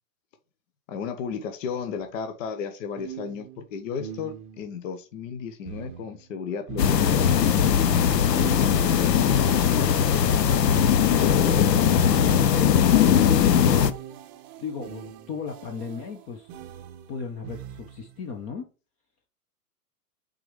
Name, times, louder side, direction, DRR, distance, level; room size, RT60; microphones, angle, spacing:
voice 1, 0.9-7.3 8.4-10.5, left 6 dB, 50° left, 1.0 m, -34 dB
sound 1, 2.0-2.1 3.0-4.8 5.7-7.6 8.4-12.9 13.7-18.2, right 10 dB, 35° right, 0.7 m, -42 dB
sound 2, 6.8-13.9, left 8 dB, 85° left, 0.8 m, -20 dB
voice 2, 7.9-8.6 11.8-13.9 14.6-16.5 17.1-18.7, left 5 dB, 25° left, 0.8 m, -35 dB
7.5 x 3.9 x 3.2 m
hypercardioid pair, 120°, 48 cm